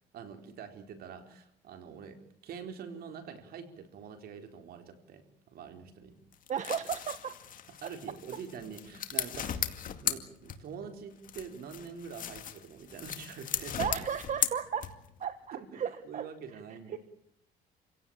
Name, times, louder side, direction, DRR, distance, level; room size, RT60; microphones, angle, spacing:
voice 1, 0.1-6.2 7.8-13.8 15.5-17.0, right 6 dB, 65° right, 6 dB, 4.3 m, -45 dB
sound 1, 6.3-10.9 11.2-15.2, left 9 dB, 55° left, 2.2 m, -37 dB
voice 2, 6.5-7.3 13.8-14.9 15.2-16.2 16.5-16.6 16.9-17.0, right 8 dB, 45° right, 10 dB, 1.4 m, -34 dB
28.0 x 17.0 x 8.8 m, 0.70 s
cardioid pair, 110°, 17 cm